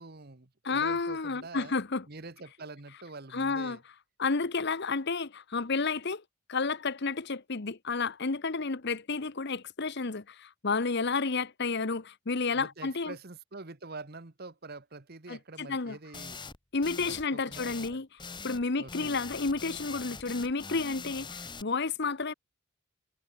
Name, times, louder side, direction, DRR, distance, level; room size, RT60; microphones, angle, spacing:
voice 1, 0.0-1.8 2.1-3.8 12.5-16.4 17.0-17.6 17.9-18.0 18.8-19.2, right 3 dB, 45° right, 1.4 m, -46 dB
voice 2, 0.6-2.0 3.3-3.8 4.2-6.2 6.5-13.1 15.3-16.0 16.7-18.1 18.4-22.3, left 4 dB, 50° left, 1.0 m, -31 dB
sound 1, 16.1-16.6 16.8-17.2 17.5-17.9 18.2-18.6 18.9-21.6, left 4 dB, 20° left, 2.0 m, -42 dB
head